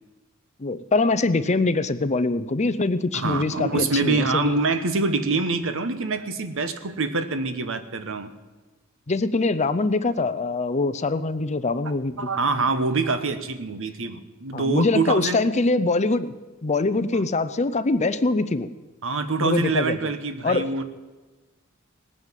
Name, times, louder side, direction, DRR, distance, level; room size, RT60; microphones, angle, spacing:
voice 1, 0.6-4.6 9.1-12.2 14.5-16.4 16.6-18.7 19.4-20.0 20.4-20.7, left 3 dB, 30° left, 12 dB, 0.7 m, -23 dB
voice 2, 3.1-8.3 12.2-15.4 17.1-17.2 19.0-20.8, right 3 dB, 65° right, 10 dB, 1.2 m, -25 dB
18.5 x 9.4 x 7.5 m, 1.3 s
head